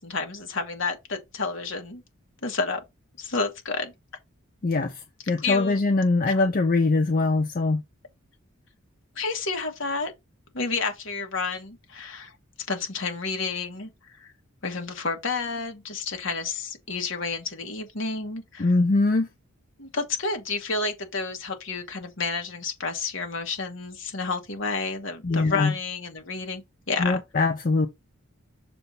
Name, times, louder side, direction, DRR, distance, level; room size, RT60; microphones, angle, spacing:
voice 1, 0.0-2.0 2.4-2.8 3.2-3.9 5.3-5.8 6.3-6.4 9.1-10.1 10.5-12.3 12.7-13.9 14.2-14.3 14.6-18.7 19.8-27.2, left 4 dB, 60° left, 1.5 m, -30 dB
voice 2, 4.6-4.9 5.3-7.8 18.6-19.3 25.2-25.7 27.0-27.9, left 3 dB, 40° left, 0.4 m, -22 dB
6.7 x 2.6 x 5.5 m
head